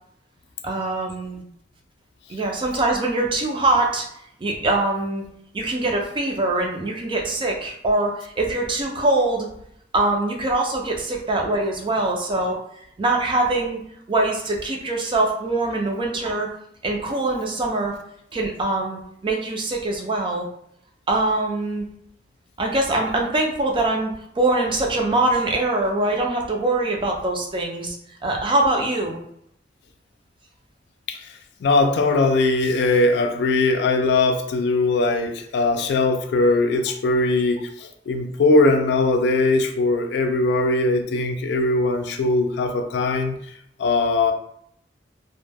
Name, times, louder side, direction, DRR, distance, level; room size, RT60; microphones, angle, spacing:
voice 1, 0.6-1.4 2.3-4.1 4.4-5.2 5.5-9.5 9.9-12.6 13.0-13.8 14.1-16.5 16.8-18.0 18.3-20.5 21.1-21.8 22.6-28.0 28.2-29.2, right 2 dB, 30° right, 1 dB, 0.4 m, -23 dB
voice 2, 31.6-43.4 43.8-44.3, left 2 dB, 70° left, 6 dB, 0.3 m, -20 dB
2.2 x 2.1 x 3.3 m, 0.71 s
head